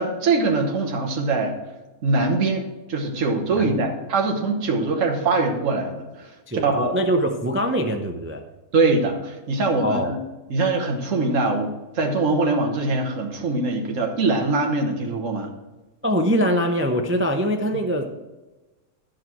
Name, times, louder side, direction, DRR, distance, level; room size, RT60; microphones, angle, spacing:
voice 1, 0.0-1.6 2.0-2.6 2.9-6.9 8.7-10.2 10.5-15.5, right 3 dB, 65° right, 2 dB, 1.6 m, -23 dB
voice 2, 3.5-3.9 6.5-8.4 9.8-10.1 16.0-18.1, equal, 20° right, 4 dB, 0.3 m, -23 dB
10.5 x 6.5 x 4.6 m, 1.1 s
omnidirectional pair, 1.5 m